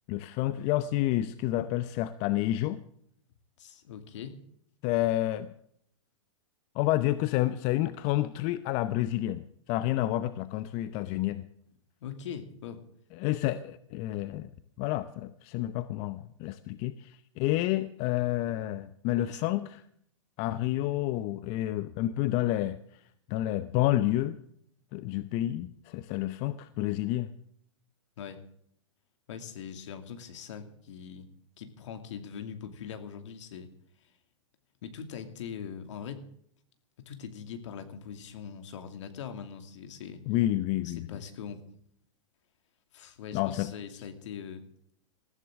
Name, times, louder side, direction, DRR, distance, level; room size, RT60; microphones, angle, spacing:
voice 1, 0.1-2.8 4.8-5.5 6.7-11.5 13.2-14.5 14.8-19.8 20.4-23.0 23.3-24.4 24.9-27.3 40.3-41.1 43.3-43.7, left 14 dB, 40° left, 12 dB, 0.8 m, -29 dB
voice 2, 3.6-4.4 12.0-12.8 19.3-19.5 28.2-28.4 29.3-31.3 31.6-33.7 34.0-34.1 34.8-36.3 37.1-40.2 40.8-41.6 42.9-44.6, left 7 dB, 65° left, 7 dB, 2.4 m, -42 dB
20.0 x 14.5 x 3.7 m, 0.68 s
hypercardioid pair, 115°, 17 cm